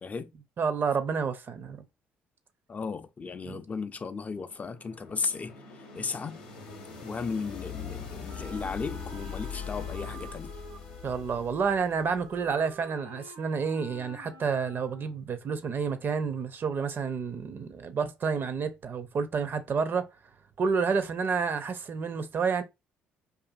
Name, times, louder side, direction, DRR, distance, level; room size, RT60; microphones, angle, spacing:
voice 1, 0.0-0.3 2.7-5.5 5.9-6.4 7.0-10.5, left 5 dB, 30° left, 0.3 m, -35 dB
voice 2, 0.6-1.8 3.5-3.6 11.0-20.1 20.6-22.6, right 5 dB, 45° right, 0.5 m, -29 dB
sound 1, 3.8-12.7, left 6 dB, 90° left, 0.6 m, -42 dB
Wind instrument woodwind instrument, 8.3-15.3, right 1 dB, 80° right, 0.8 m, -49 dB
2.5 x 2.5 x 2.4 m
hypercardioid pair, 60°, 5 cm